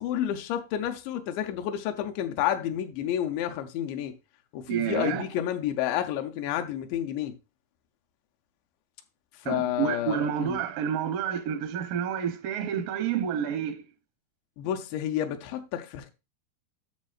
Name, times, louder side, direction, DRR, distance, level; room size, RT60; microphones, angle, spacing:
voice 1, 0.0-4.1 4.5-7.4 9.4-10.6 14.6-16.1, left 11 dB, 85° left, 3.0 m, -30 dB
voice 2, 4.7-5.3 9.5-13.8, right 8 dB, 80° right, 2.0 m, -29 dB
11.5 x 6.4 x 2.4 m
omnidirectional pair, 5.0 m